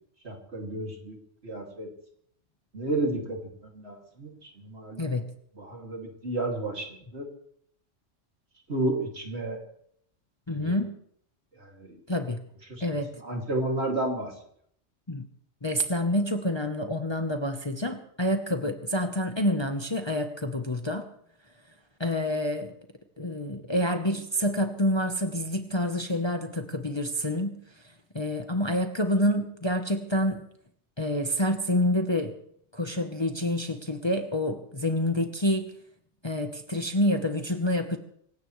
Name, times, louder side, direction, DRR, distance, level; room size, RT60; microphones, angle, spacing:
voice 1, 0.2-1.9 2.7-5.1 5.6-7.3 8.7-9.6 10.5-10.8 11.6-12.0 12.7-12.8 13.2-14.4, right 2 dB, 55° right, 1 dB, 2.9 m, -32 dB
voice 2, 10.5-10.9 12.1-12.4 12.8-13.1 15.1-15.3 15.6-21.1 22.0-22.7 23.2-27.5 28.1-30.4 31.0-32.3 32.7-35.7 36.2-38.0, left 1 dB, 25° left, 5 dB, 1.0 m, -27 dB
25.5 x 16.5 x 3.2 m, 0.68 s
omnidirectional pair, 1.3 m